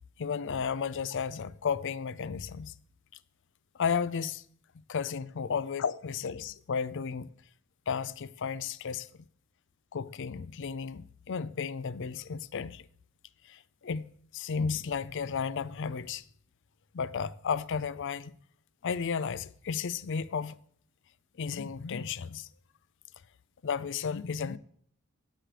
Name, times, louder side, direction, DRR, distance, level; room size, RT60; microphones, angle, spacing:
voice 1, 0.2-2.7 3.7-4.4 4.9-7.3 7.9-9.1 9.9-12.9 13.4-16.2 16.9-18.4 18.8-20.6 21.4-22.5 23.6-24.6, left 6 dB, 55° left, 0.5 m, -33 dB
16.5 x 7.6 x 3.4 m
head